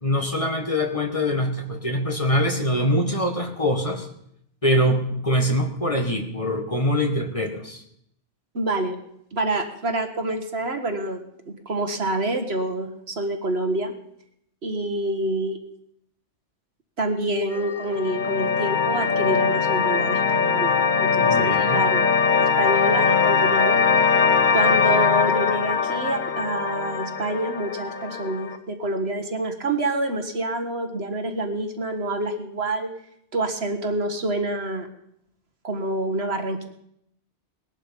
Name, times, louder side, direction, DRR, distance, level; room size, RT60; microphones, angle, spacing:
voice 1, 0.0-4.1 4.6-7.8 21.2-21.8, equal, 30° left, 3 dB, 1.8 m, -23 dB
voice 2, 8.5-9.0 9.3-13.9 14.6-15.6 17.0-22.1 22.4-23.8 24.5-32.9 33.3-34.9 35.6-36.6, right 2 dB, 60° right, 5 dB, 1.9 m, -27 dB
sound 1, 17.5-28.6, left 5 dB, 45° left, 1.0 m, -21 dB
19.5 x 11.5 x 5.4 m, 0.74 s
omnidirectional pair, 1.2 m